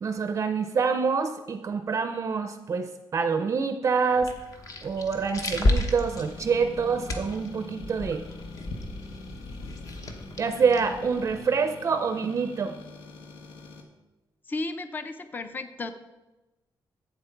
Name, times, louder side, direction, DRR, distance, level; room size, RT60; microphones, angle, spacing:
voice 1, 0.0-4.3 4.8-8.2 10.4-12.7, right 5 dB, 35° right, 8 dB, 0.5 m, -26 dB
sound 1, 4.1-11.4, left 1 dB, 45° left, 1.1 m, -32 dB
sound 2, 6.0-13.8, left 3 dB, 80° left, 1.5 m, -44 dB
voice 2, 14.5-15.9, left 3 dB, 25° left, 10 dB, 0.5 m, -34 dB
11.5 x 8.3 x 4.5 m, 1.1 s
wide cardioid pair, 180°, 8 cm